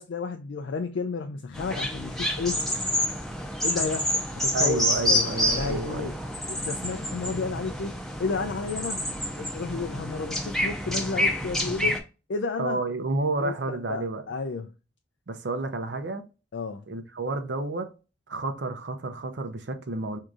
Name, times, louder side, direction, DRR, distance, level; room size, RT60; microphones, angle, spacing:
voice 1, 0.0-2.7 3.6-6.1 6.5-9.0 9.4-12.0 12.3-12.8 13.4-14.7 16.5-16.8, left 4 dB, 80° left, 0.4 m, -32 dB
sound 1, 1.5-12.0, left 1 dB, ahead, 0.6 m, -28 dB
sound 2, 2.9-7.8, equal, 35° left, 0.7 m, -44 dB
voice 2, 4.5-6.1 12.6-14.2 15.3-16.2 16.9-17.9 18.3-20.2, right 3 dB, 70° right, 0.6 m, -30 dB
4.7 x 2.7 x 2.4 m
head